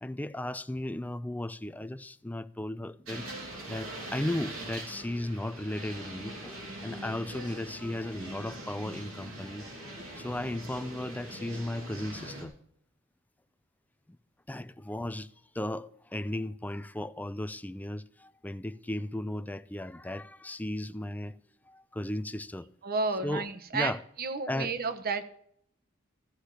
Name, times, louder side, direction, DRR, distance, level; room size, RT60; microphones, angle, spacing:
voice 1, 0.0-3.2 3.7-6.6 6.8-9.7 10.2-12.5 14.5-15.3 15.5-21.4 21.7-22.7 23.2-23.5 23.7-24.0 24.5-24.7, left 1 dB, 10° left, 0.4 m, -35 dB
sound 1, 3.1-12.4, right 1 dB, 90° right, 3.7 m, -42 dB
voice 2, 22.8-23.9 24.2-25.2, right 4 dB, 50° right, 1.0 m, -31 dB
14.5 x 4.9 x 8.7 m
head